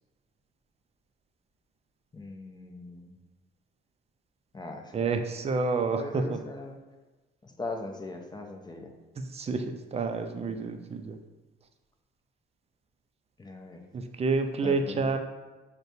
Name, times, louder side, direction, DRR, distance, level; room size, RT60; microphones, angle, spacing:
voice 1, 2.1-3.2 4.5-5.2 5.9-6.8 7.4-8.9 13.4-13.8 14.6-15.2, left 2 dB, 20° left, 3 dB, 0.5 m, -40 dB
voice 2, 4.9-6.4 9.3-11.2 13.9-15.2, right 4 dB, 30° right, 6 dB, 0.4 m, -29 dB
6.4 x 2.2 x 2.7 m, 1.2 s
cardioid pair, 90°, 20 cm